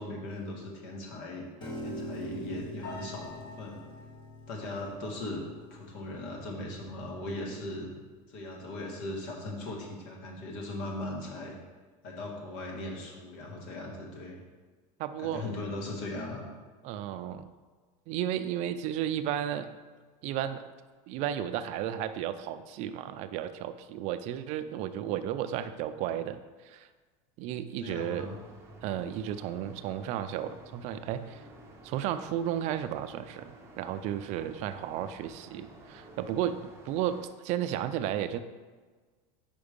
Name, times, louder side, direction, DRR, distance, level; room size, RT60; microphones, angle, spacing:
voice 1, 0.0-1.4 1.8-3.8 4.5-5.4 5.7-7.9 8.3-11.6 12.0-14.4 15.2-16.4 27.8-28.4, left 2 dB, 60° left, 0 dB, 1.6 m, -38 dB
Piano, 1.6-7.8, equal, 30° left, 1.2 m, -44 dB
voice 2, 15.0-15.6 16.8-17.5 18.1-19.7 20.2-20.6 21.1-26.4 26.6-26.9 27.4-28.3 28.8-31.4 31.8-36.6 36.8-38.4, right 10 dB, 40° right, 11 dB, 0.4 m, -33 dB
sound 1, 28.2-37.3, right 1 dB, 15° right, 0.7 m, -52 dB
5.2 x 4.7 x 5.1 m, 1.4 s
supercardioid pair, 155°, 17 cm